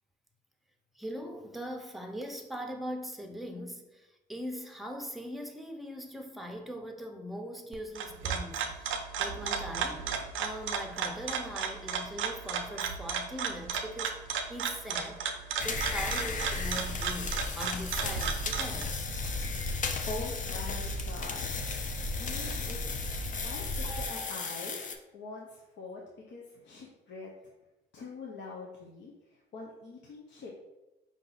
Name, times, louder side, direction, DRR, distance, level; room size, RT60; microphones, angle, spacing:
voice 1, 1.0-3.9 4.3-10.1 10.4-14.1 14.5-15.2 15.6-19.1, equal, ahead, 0.7 m, -41 dB
sound 1, 7.7-18.8, right 6 dB, 80° right, 0.5 m, -34 dB
sound 2, 15.6-24.9, left 3 dB, 40° left, 0.6 m, -34 dB
sound 3, 19.4-20.3 23.8-25.1, left 2 dB, 90° left, 1.1 m, -49 dB
voice 2, 20.1-21.5 22.0-22.8 23.3-24.8 25.1-26.0 26.3-27.3 27.9-29.1 29.5-30.5, left 3 dB, 65° left, 0.8 m, -43 dB
4.9 x 2.7 x 4.0 m
cardioid pair, 90°, 20 cm